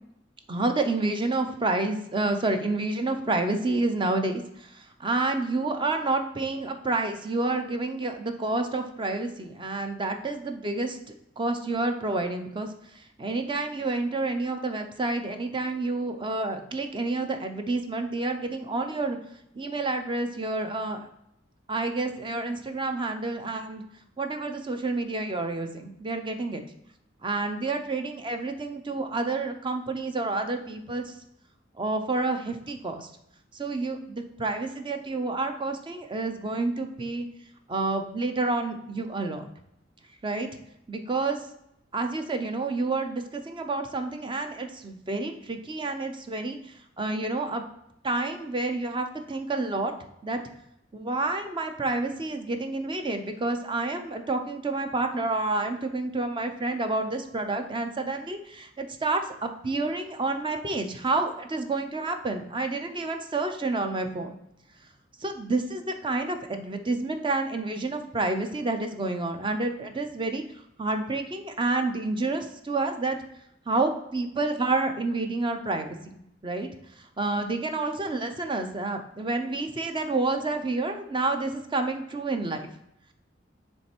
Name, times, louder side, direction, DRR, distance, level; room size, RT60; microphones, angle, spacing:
voice 1, 0.5-11.0 11.4-19.2 19.5-21.1 21.7-23.8 24.2-26.6 27.2-31.1 31.8-33.1 33.5-37.3 37.7-39.5 40.2-40.5 40.9-41.4 41.9-46.6 47.0-47.6 48.0-49.9 50.2-50.4 50.9-64.3 65.2-70.4 70.8-73.2 73.7-76.0 76.4-76.7 77.2-82.7, right 2 dB, 25° right, 6 dB, 0.6 m, -29 dB
7.4 x 3.3 x 4.4 m, 0.77 s
head